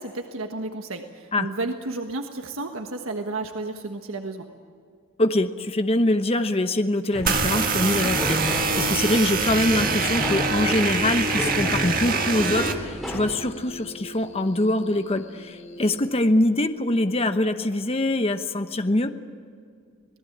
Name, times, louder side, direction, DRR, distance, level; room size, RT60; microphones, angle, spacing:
voice 1, 0.0-4.5, right 2 dB, 85° right, 5 dB, 1.4 m, -32 dB
voice 2, 5.2-19.1, left 1 dB, 30° left, 8 dB, 0.9 m, -24 dB
sound 1, 7.1-13.4, equal, ahead, 4.5 m, -31 dB
sound 2, 7.3-12.7, right 4 dB, 45° right, 1.9 m, -25 dB
sound 3, 9.7-16.2, right 1 dB, 70° left, 3.5 m, -41 dB
27.0 x 18.5 x 8.6 m, 2.2 s
head